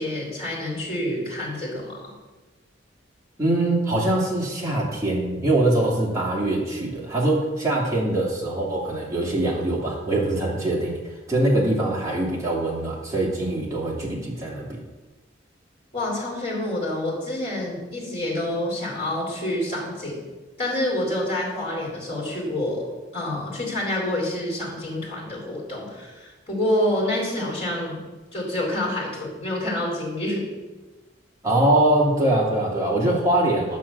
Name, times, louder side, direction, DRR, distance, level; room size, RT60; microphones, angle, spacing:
voice 1, 0.0-2.1 15.9-20.2 20.6-22.9 23.1-28.0 28.3-30.5, left 1 dB, 30° left, -5 dB, 4.1 m, -27 dB
voice 2, 3.4-14.8 31.4-33.8, right 1 dB, 15° right, -5 dB, 2.5 m, -23 dB
9.5 x 5.8 x 7.1 m, 1.2 s
head